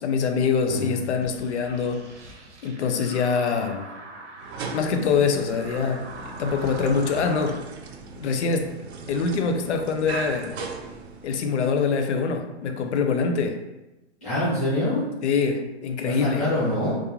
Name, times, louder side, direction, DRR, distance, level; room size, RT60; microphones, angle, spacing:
voice 1, 0.0-2.0 2.6-3.9 4.7-6.1 6.4-7.6 8.2-8.7 9.1-10.5 11.2-13.6 15.2-16.4, left 5 dB, 75° left, 6 dB, 0.5 m, -24 dB
voice 2, 0.7-1.0 14.2-15.0 16.0-16.9, left 1 dB, ahead, -13 dB, 0.4 m, -25 dB
sound 1, 1.2-7.6, right 3 dB, 90° right, 0.8 m, -42 dB
sound 2, 4.4-11.6, right 4 dB, 65° right, 0.5 m, -38 dB
2.5 x 2.1 x 2.9 m, 1.0 s
hypercardioid pair, 175°, 35 cm